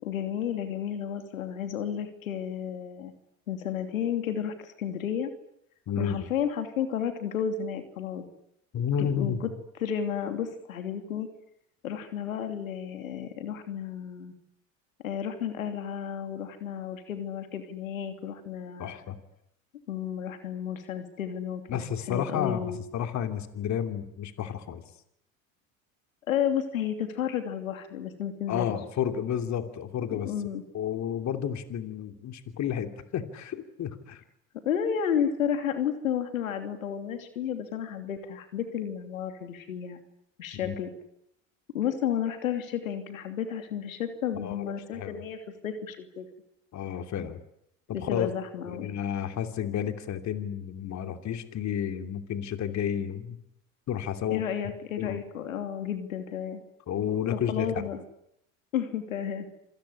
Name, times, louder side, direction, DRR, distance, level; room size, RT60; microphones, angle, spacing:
voice 1, 0.0-3.1 3.5-5.3 6.0-8.2 9.0-9.5 9.8-11.3 11.8-14.3 15.0-19.0 19.9-22.8 26.3-28.7 30.1-30.6 34.6-40.0 40.4-40.9 41.7-46.3 47.9-48.9 54.3-56.6 57.3-58.0 58.7-59.5, left 8 dB, 85° left, 8 dB, 3.0 m, -32 dB
voice 2, 5.9-6.3 8.7-9.5 18.8-19.1 21.7-22.6 22.9-24.8 28.5-30.3 30.7-34.2 40.6-40.7 44.4-45.2 46.7-47.4 48.0-48.3 48.7-53.4 53.9-54.4 55.0-55.2 56.9-57.9, left 9 dB, 45° left, 8 dB, 2.9 m, -31 dB
27.0 x 19.5 x 10.0 m, 0.76 s
hypercardioid pair, 80°, 39 cm